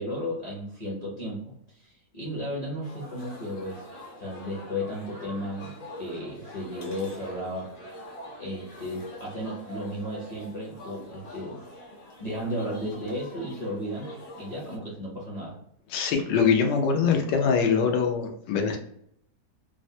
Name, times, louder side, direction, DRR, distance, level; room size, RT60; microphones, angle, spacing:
voice 1, 0.0-3.9 4.2-7.7 8.4-11.7 12.2-14.1 14.3-15.6, equal, 40° left, -6 dB, 0.6 m, -34 dB
sound 1, 2.8-14.8, equal, 60° left, 1.4 m, -45 dB
voice 2, 15.9-18.8, left 6 dB, 90° left, 3 dB, 1.3 m, -23 dB
3.4 x 2.0 x 2.7 m, 0.71 s
omnidirectional pair, 1.9 m